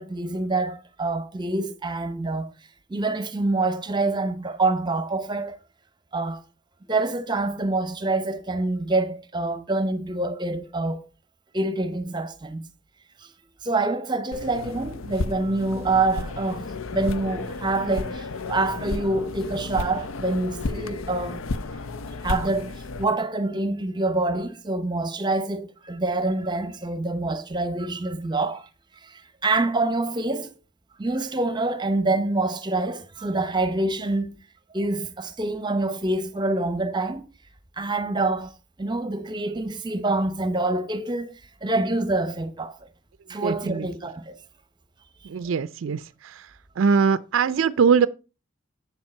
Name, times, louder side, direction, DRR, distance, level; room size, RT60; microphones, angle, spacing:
voice 1, 0.0-2.5 2.9-5.6 6.1-6.4 6.9-11.0 11.5-12.6 13.2-13.3 13.6-21.4 22.2-28.6 29.0-30.5 31.0-34.4 34.7-37.2 37.8-38.5 38.8-41.3 41.6-42.7 43.3-44.3, right 2 dB, 20° right, 0.8 m, -26 dB
sound 1, 14.3-23.1, left 3 dB, 80° left, 0.6 m, -33 dB
voice 2, 43.4-43.9 45.3-46.3 46.8-48.1, right 6 dB, 70° right, 0.4 m, -22 dB
8.0 x 7.3 x 4.3 m
head